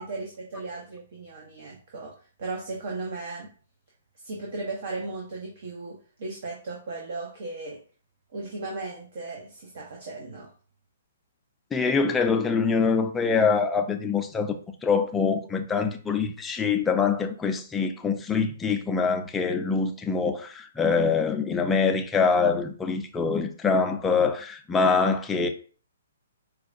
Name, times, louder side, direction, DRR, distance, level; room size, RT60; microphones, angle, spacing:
voice 1, 0.0-2.1 2.4-3.5 4.2-7.8 8.3-10.5, right 3 dB, 55° right, 0.8 m, -36 dB
voice 2, 11.7-14.5 14.8-25.5, left 5 dB, 10° left, 0.4 m, -24 dB
4.5 x 2.2 x 2.5 m
figure-of-eight pair, 125°, 0 cm